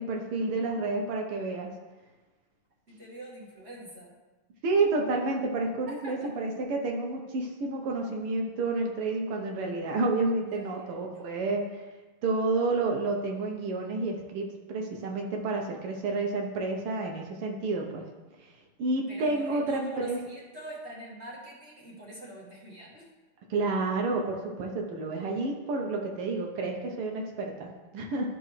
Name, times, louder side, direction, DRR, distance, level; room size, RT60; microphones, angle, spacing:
voice 1, 0.0-1.7 4.6-11.8 12.2-18.1 18.4-18.5 18.8-20.2 23.5-28.3, right 3 dB, 80° right, 1 dB, 1.8 m, -30 dB
voice 2, 2.9-4.1 5.9-6.3 10.5-11.2 19.1-23.0, right 1 dB, 30° right, -6 dB, 1.9 m, -44 dB
13.0 x 4.4 x 3.2 m, 1.2 s
omnidirectional pair, 2.4 m